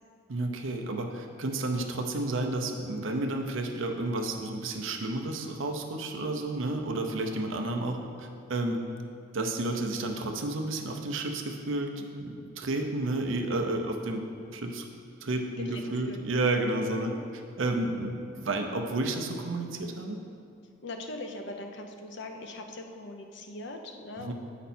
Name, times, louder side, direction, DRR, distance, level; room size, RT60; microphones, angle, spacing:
voice 1, 0.3-8.8 9.3-14.3 14.5-14.8 15.2-17.1 17.6-20.2 24.2-24.3, right 2 dB, 65° right, 3 dB, 0.7 m, -31 dB
voice 2, 15.7-16.2 17.0-17.2 20.8-24.3, left 2 dB, 55° left, 4 dB, 0.6 m, -41 dB
8.0 x 5.1 x 4.3 m, 2.4 s
head